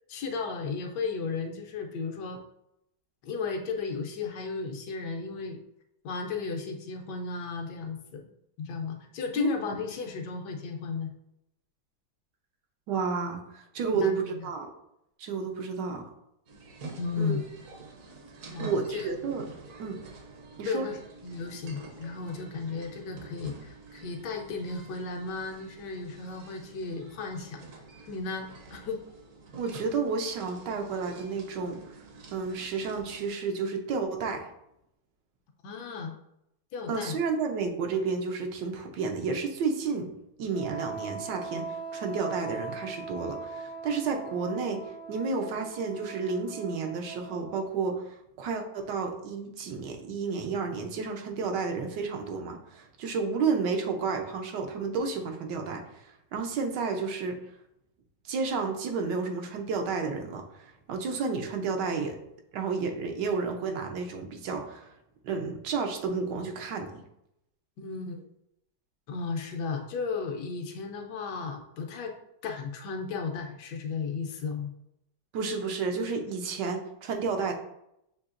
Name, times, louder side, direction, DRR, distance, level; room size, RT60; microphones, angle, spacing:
voice 1, 0.1-2.4 3.2-5.6 6.0-8.2 8.6-11.1 13.9-14.5 17.0-17.4 18.5-19.1 20.6-27.6 28.1-29.0 35.6-36.1 36.7-37.2 67.8-68.2 69.1-72.1 72.4-74.7, left 4 dB, 75° left, 3 dB, 1.2 m, -34 dB
voice 2, 12.9-14.7 15.2-16.1 17.2-17.4 18.6-19.5 19.8-20.0 20.6-20.9 29.6-31.8 32.3-34.5 36.9-40.1 40.4-55.8 56.3-57.4 58.3-62.2 62.5-64.9 65.2-66.9 75.3-77.5, right 4 dB, 80° right, 3 dB, 1.3 m, -31 dB
sound 1, 16.5-33.3, right 4 dB, 60° right, 1.0 m, -48 dB
Wind instrument woodwind instrument, 40.5-47.9, right 5 dB, 35° right, 0.6 m, -40 dB
6.7 x 2.8 x 2.5 m, 0.80 s
omnidirectional pair, 1.9 m